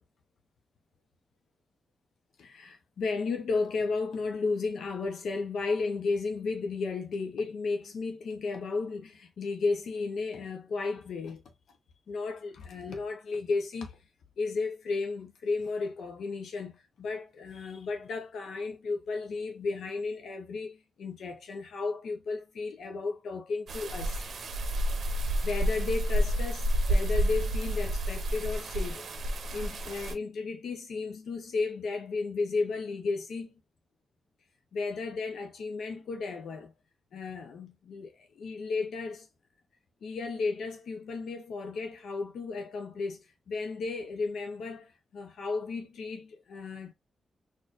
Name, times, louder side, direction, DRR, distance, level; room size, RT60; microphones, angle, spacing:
voice 1, 2.4-11.4 12.1-14.0 14.4-24.2 25.2-29.2 29.5-33.6 34.7-36.7 37.1-39.3 40.0-46.9, left 4 dB, 80° left, 0.6 m, -34 dB
sound 1, 23.7-30.1, equal, 55° right, 0.6 m, -29 dB
4.3 x 2.5 x 2.4 m
wide cardioid pair, 160°, 0 cm